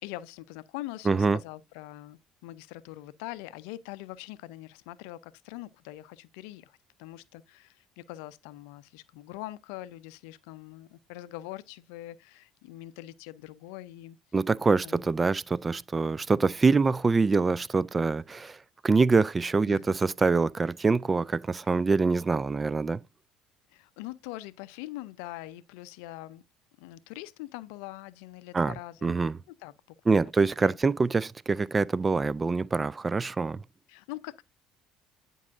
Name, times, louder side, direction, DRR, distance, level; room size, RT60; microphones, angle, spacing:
voice 1, 0.0-14.2 14.8-15.1 19.7-20.0 23.7-26.4 26.8-29.2 29.5-29.7 30.1-30.8 33.9-34.4, left 16 dB, 65° left, 0.5 m, -43 dB
voice 2, 1.1-1.4 14.3-18.6 18.8-23.0 28.5-28.7 29.0-29.3 30.1-33.6, right 4 dB, 25° right, 0.3 m, -25 dB
9.4 x 5.4 x 2.5 m
figure-of-eight pair, 60°, 0 cm